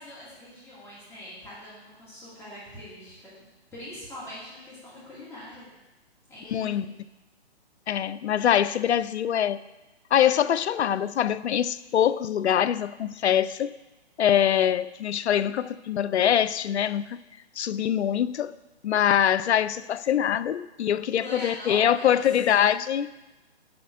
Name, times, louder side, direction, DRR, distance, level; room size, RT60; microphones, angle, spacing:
voice 1, 0.0-3.3 3.7-5.7 6.3-6.9 21.2-22.2, left 1 dB, 10° left, 2.3 m, -42 dB
voice 2, 6.5-6.9 7.9-9.6 10.1-13.8 14.2-17.2 17.6-18.6 18.8-23.1, left 10 dB, 85° left, 0.5 m, -24 dB
8.7 x 4.3 x 6.2 m
hypercardioid pair, 145°, 33 cm